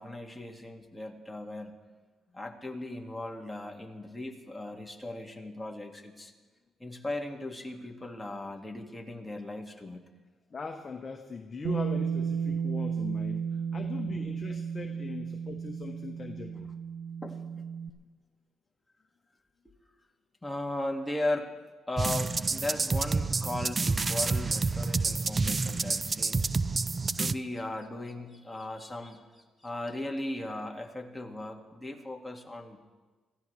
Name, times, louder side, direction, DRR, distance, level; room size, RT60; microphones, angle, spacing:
voice 1, 0.0-1.8 2.3-6.3 6.8-10.0 17.2-17.6 20.4-21.5 21.9-26.5 27.2-32.8, left 1 dB, 10° left, 1 dB, 2.2 m, -37 dB
voice 2, 10.5-13.5 13.7-16.7, left 4 dB, 35° left, 4 dB, 1.1 m, -40 dB
Bass guitar, 11.6-17.9, right 7 dB, 80° right, 0.9 m, -33 dB
sound 1, 22.0-27.3, right 4 dB, 30° right, 0.4 m, -29 dB
25.5 x 16.0 x 3.4 m, 1.3 s
cardioid pair, 90°, 0 cm